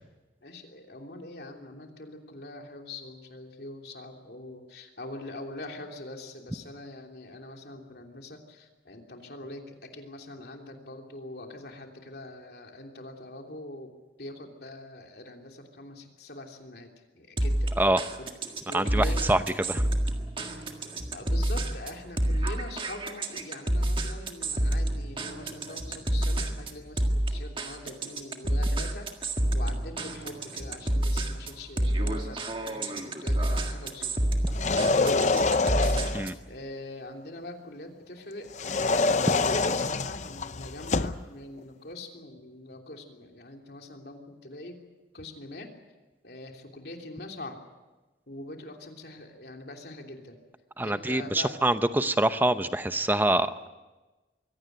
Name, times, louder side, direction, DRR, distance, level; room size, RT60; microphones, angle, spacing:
voice 1, 0.4-13.9 14.2-17.7 18.2-18.3 18.7-19.6 20.5-20.7 21.1-29.1 29.5-34.2 36.5-44.8 45.1-45.7 46.2-47.6 48.3-50.4 50.8-51.6, left 2 dB, 60° left, 2 dB, 3.1 m, -43 dB
sound 1, 17.4-36.4, right 1 dB, 30° right, 1.8 m, -29 dB
voice 2, 18.7-19.4 19.7-19.8 36.1-36.4 50.8-53.7, right 1 dB, 10° right, 11 dB, 0.8 m, -25 dB
sound 2, 34.5-36.3 38.5-41.2, left 3 dB, 40° left, 0.7 m, -26 dB
24.0 x 17.0 x 9.3 m, 1.2 s
head